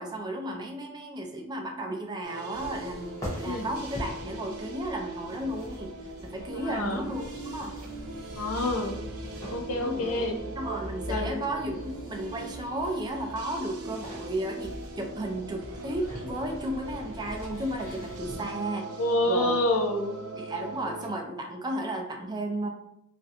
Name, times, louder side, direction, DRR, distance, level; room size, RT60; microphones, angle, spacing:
voice 1, 0.0-6.0 6.2-7.8 9.7-10.1 10.6-18.9 19.3-19.7 20.4-22.7, right 1 dB, 20° right, 3 dB, 0.3 m, -34 dB
sound 1, 2.2-21.1, right 2 dB, 85° right, 0.4 m, -41 dB
sound 2, 2.5-18.4, equal, 15° left, 0.7 m, -42 dB
voice 2, 6.5-7.0 8.4-9.0 9.5-10.4 11.1-11.4 19.0-20.2, left 1 dB, 70° left, 3 dB, 0.4 m, -27 dB
2.4 x 2.1 x 2.7 m, 0.80 s
head